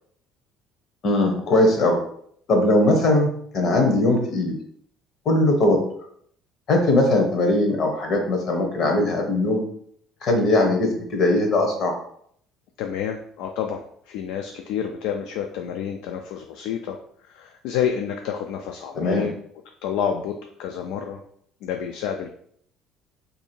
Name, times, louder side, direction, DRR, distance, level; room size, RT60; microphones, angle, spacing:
voice 1, 1.0-2.0 2.5-4.5 5.3-5.8 6.7-9.6 10.2-11.9 18.9-19.3, left 1 dB, 40° left, 3 dB, 0.8 m, -20 dB
voice 2, 12.8-17.0 17.2-19.3 19.8-21.2 21.6-22.3, left 8 dB, 85° left, 4 dB, 0.3 m, -29 dB
2.7 x 2.7 x 4.3 m, 0.65 s
cardioid pair, 170°, 0 cm